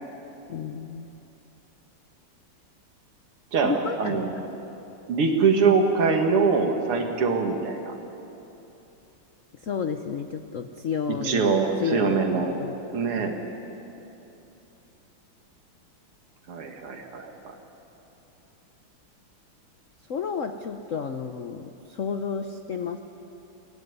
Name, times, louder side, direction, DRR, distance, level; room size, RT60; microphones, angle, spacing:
voice 1, 0.5-1.1 3.6-4.5 9.5-12.8 13.2-13.3 20.1-23.0, left 6 dB, 65° left, 7 dB, 0.8 m, -32 dB
voice 2, 3.5-4.3 5.1-7.9 11.1-12.5 12.9-13.3 16.5-17.6, right 5 dB, 80° right, 3 dB, 2.7 m, -23 dB
24.5 x 16.5 x 9.6 m, 3.0 s
omnidirectional pair, 2.4 m